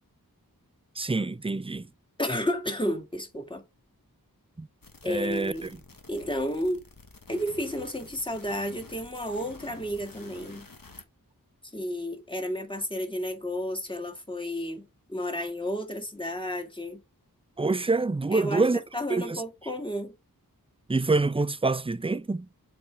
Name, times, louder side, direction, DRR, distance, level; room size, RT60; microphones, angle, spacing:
voice 1, 1.0-1.9 4.6-4.7 5.0-5.5 17.6-18.8 19.1-19.4 20.9-22.5, right 3 dB, 15° right, 0.5 m, -26 dB
voice 2, 2.2-3.6 5.0-5.7 6.1-6.8 7.3-10.7 11.7-17.0 18.3-20.1, equal, 15° left, 2.0 m, -32 dB
sound 1, 4.8-11.0, left 3 dB, 65° left, 1.6 m, -50 dB
7.2 x 4.5 x 3.5 m
wide cardioid pair, 50°, 36 cm